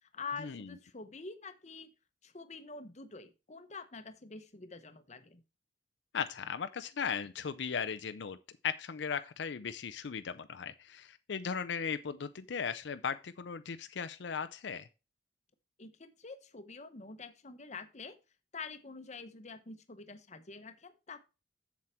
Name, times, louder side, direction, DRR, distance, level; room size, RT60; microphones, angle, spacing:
voice 1, 0.0-1.9 2.2-5.4 15.8-18.2 18.5-21.2, left 4 dB, 40° left, 0.9 m, -46 dB
voice 2, 6.1-8.4 8.6-14.9, left 6 dB, 75° left, 0.5 m, -37 dB
7.6 x 7.3 x 4.4 m
head